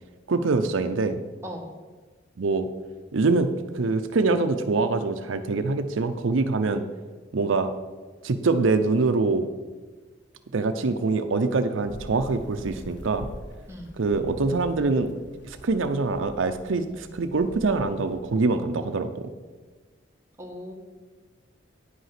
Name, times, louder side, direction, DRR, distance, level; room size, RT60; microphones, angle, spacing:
voice 1, 0.3-1.2 2.4-2.7 3.1-6.8 7.3-7.7 8.2-9.5 10.5-13.3 14.0-15.1 15.4-19.3, right 3 dB, 80° right, 9 dB, 0.6 m, -24 dB
sound 1, 11.8-18.2, left 1 dB, 60° left, 0.8 m, -44 dB
voice 2, 13.7-14.0 20.4-20.7, equal, 15° right, 0 dB, 1.4 m, -38 dB
9.9 x 5.5 x 5.8 m, 1.3 s
head